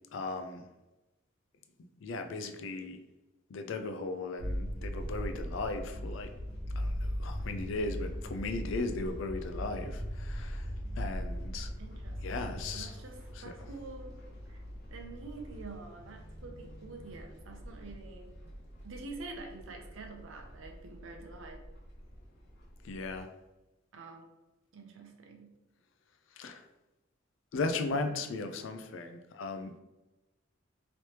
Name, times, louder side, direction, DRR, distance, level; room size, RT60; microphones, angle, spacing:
voice 1, 0.1-0.7 2.0-3.0 3.5-6.3 6.8-10.7 11.0-11.7 12.2-12.9 13.4-13.5 22.8-23.3 26.4-26.6 27.5-29.8, left 3 dB, 75° left, 7 dB, 0.4 m, -37 dB
sound 1, 4.4-23.2, equal, 55° left, 0.9 m, -40 dB
voice 2, 11.8-14.1 14.5-14.6 14.9-18.3 18.8-21.6 23.9-24.3 24.7-25.6 27.9-28.3, right 3 dB, 85° right, 3 dB, 0.6 m, -47 dB
3.2 x 3.0 x 2.9 m, 1.0 s
head